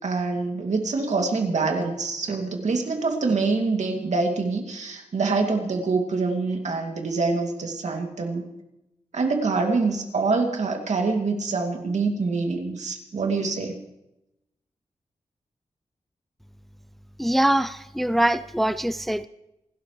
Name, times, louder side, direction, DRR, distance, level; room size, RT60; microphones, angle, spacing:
voice 1, 0.0-8.5 9.1-13.7, right 3 dB, 70° right, 2 dB, 2.5 m, -25 dB
voice 2, 17.2-19.3, right 1 dB, ahead, 13 dB, 0.5 m, -23 dB
27.5 x 12.5 x 3.3 m, 0.89 s
wide cardioid pair, 90°, 12 cm